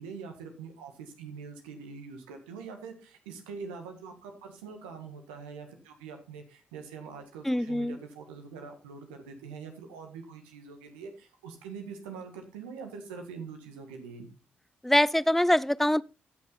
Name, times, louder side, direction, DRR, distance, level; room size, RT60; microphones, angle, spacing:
voice 1, 0.0-14.3, right 5 dB, 85° right, 1.7 m, -44 dB
voice 2, 7.4-8.0 14.8-16.0, left 1 dB, 5° left, 0.4 m, -24 dB
15.0 x 6.1 x 4.1 m
hypercardioid pair, 40°, 5 cm